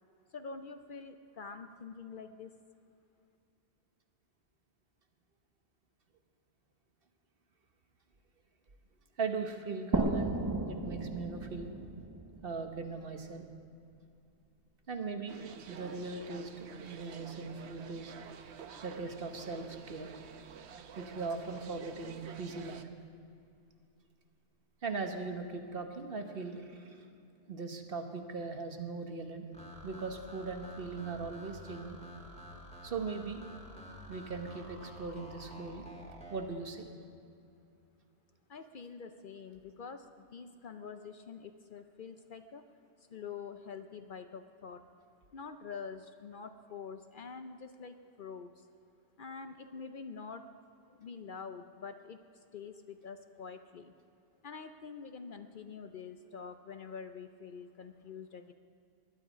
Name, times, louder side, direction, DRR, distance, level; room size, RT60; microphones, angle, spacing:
voice 1, 0.3-2.5 38.5-42.6 43.1-44.8 45.3-48.5 49.2-50.5 50.9-52.2 52.5-53.9 54.4-58.5, left 5 dB, 55° left, 8 dB, 0.7 m, -46 dB
voice 2, 9.2-10.4 10.7-11.7 12.4-13.5 14.9-15.4 15.7-18.1 18.8-20.1 21.0-22.9 24.8-27.1 27.5-29.5 29.8-32.0 32.8-33.4 34.1-35.9 36.3-36.9, right 4 dB, 55° right, 5 dB, 1.3 m, -39 dB
sound 1, 9.9-13.4, right 2 dB, 20° right, 0.7 m, -35 dB
sound 2, 15.3-22.8, right 7 dB, 75° right, 1.0 m, -49 dB
sound 3, 29.5-36.5, equal, 5° left, 1.9 m, -50 dB
20.5 x 11.5 x 5.0 m, 2.5 s
omnidirectional pair, 1.2 m